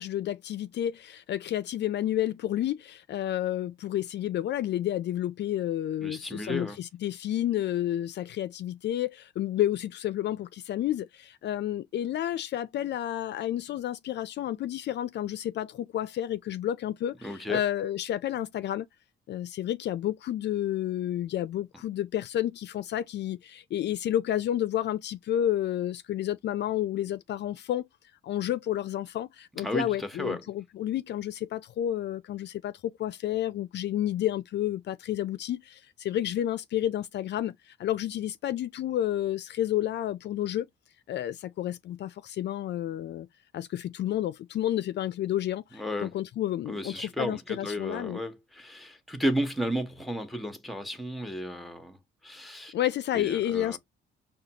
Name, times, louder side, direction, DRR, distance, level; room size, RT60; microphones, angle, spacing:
voice 1, 0.0-18.9 19.3-27.9 28.2-40.7 41.1-43.3 43.5-48.2 52.7-53.8, left 12 dB, 60° left, 0.4 m, -30 dB
voice 2, 6.0-6.8 17.2-17.6 29.6-30.4 45.7-46.1 46.7-52.7 53.1-53.8, equal, ahead, 0.9 m, -33 dB
4.9 x 2.3 x 2.8 m
cardioid pair, 90°, 20 cm